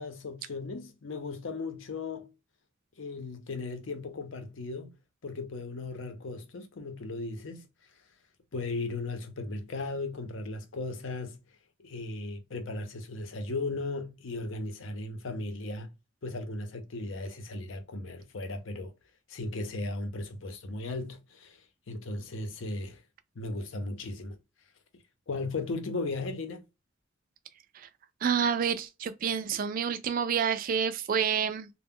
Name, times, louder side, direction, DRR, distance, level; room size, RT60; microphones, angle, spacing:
voice 1, 0.0-2.3 3.0-4.9 5.2-7.7 8.5-11.4 11.8-15.9 16.2-18.9 19.3-21.6 21.9-23.0 23.4-24.4 25.3-26.6, left 3 dB, 70° left, 0.6 m, -36 dB
voice 2, 28.2-31.7, right 7 dB, 45° right, 0.3 m, -28 dB
2.2 x 2.1 x 3.5 m
head